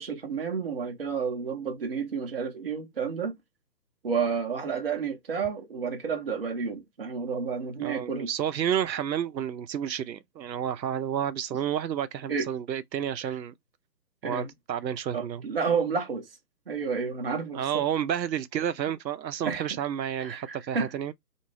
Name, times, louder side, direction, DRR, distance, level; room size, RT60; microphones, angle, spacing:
voice 1, 0.0-3.4 4.0-8.3 12.3-12.5 14.2-14.5 15.1-16.3 16.7-17.8 19.4-19.6 20.2-20.9, right 5 dB, 35° right, 0.6 m, -30 dB
voice 2, 7.8-13.5 14.2-15.4 17.5-21.1, right 9 dB, 90° right, 0.6 m, -30 dB
2.5 x 2.2 x 3.1 m
figure-of-eight pair, 150°, 49 cm